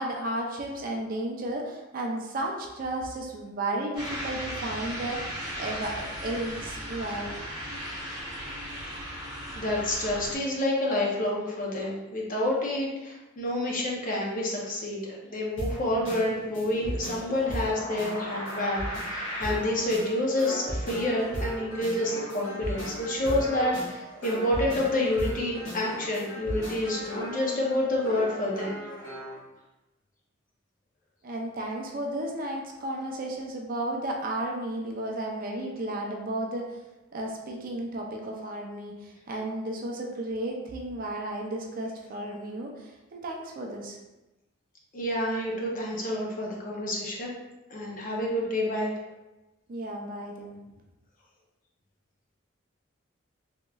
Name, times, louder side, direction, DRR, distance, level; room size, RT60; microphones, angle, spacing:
voice 1, 0.0-7.3 31.2-36.8 37.1-44.0 49.7-50.6, right 1 dB, 45° right, 0 dB, 0.4 m, -33 dB
sound 1, 3.9-10.3, equal, 5° right, 1.5 m, -37 dB
voice 2, 9.5-18.8 19.1-28.8 44.9-47.3 47.7-48.9, left 1 dB, 40° left, -3 dB, 0.6 m, -28 dB
sound 2, 15.6-29.4, equal, 70° left, 1.5 m, -36 dB
3.5 x 3.0 x 2.3 m, 1.0 s
head